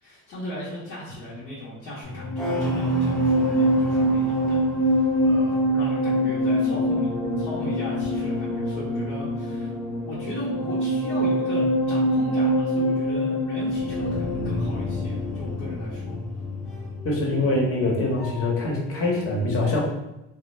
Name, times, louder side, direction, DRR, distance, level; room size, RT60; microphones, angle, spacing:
voice 1, 0.0-7.1 7.4-9.7 10.0-16.2, left 1 dB, 75° left, -7 dB, 0.9 m, -37 dB
sound 1, 2.0-18.7 18.9-19.3, equal, ahead, 0.5 m, -25 dB
voice 2, 17.0-19.8, left 2 dB, 40° left, -2 dB, 0.9 m, -24 dB
2.2 x 2.2 x 3.0 m, 0.94 s
supercardioid pair, 85°, 35 cm